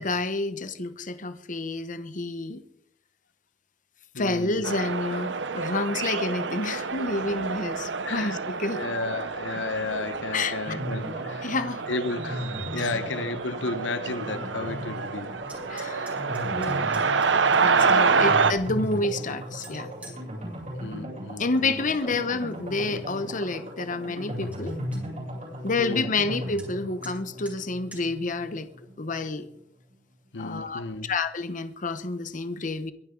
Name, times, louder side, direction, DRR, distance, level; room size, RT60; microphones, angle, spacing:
voice 1, 0.0-2.6 4.2-8.8 10.3-10.5 11.4-11.9 12.8-12.9 15.7-16.2 16.5-17.0 17.5-19.9 21.4-24.8 25.6-28.7 29.0-29.5 30.4-32.9, left 3 dB, 45° left, 1.0 m, -29 dB
voice 2, 4.1-4.7 8.0-8.4 8.7-11.5 11.9-15.3 17.7-18.4 20.8-22.2 25.8-26.2 30.3-31.1, left 3 dB, 85° left, 1.0 m, -33 dB
sound 1, 4.6-18.5, right 5 dB, 85° right, 0.9 m, -27 dB
sound 2, 10.7-29.3 29.5-29.6 29.9-30.0, equal, 45° right, 7.8 m, -37 dB
sound 3, 15.4-18.1 18.6-20.2 21.6-22.0 22.4-22.9 23.4-23.5 23.8-23.9 24.2-24.3 24.5-25.0 26.6-26.7 27.0-27.1 27.5-27.6 27.9-28.0, right 1 dB, 10° right, 5.7 m, -49 dB
23.0 x 12.0 x 3.9 m
head